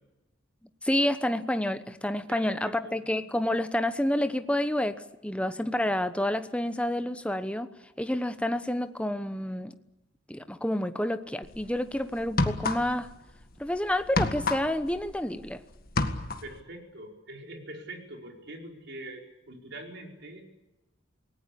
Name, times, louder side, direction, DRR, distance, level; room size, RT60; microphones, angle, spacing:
voice 1, 0.8-7.7 8.0-9.7 10.3-13.1 13.6-15.6, left 1 dB, 5° left, 1.0 m, -29 dB
voice 2, 2.3-3.0 16.4-20.5, right 1 dB, 60° right, 4.9 m, -44 dB
sound 1, 11.4-11.6 12.2-13.1 13.4-15.5 15.8-16.6, left 2 dB, 50° left, 1.9 m, -29 dB
27.5 x 19.0 x 8.5 m
head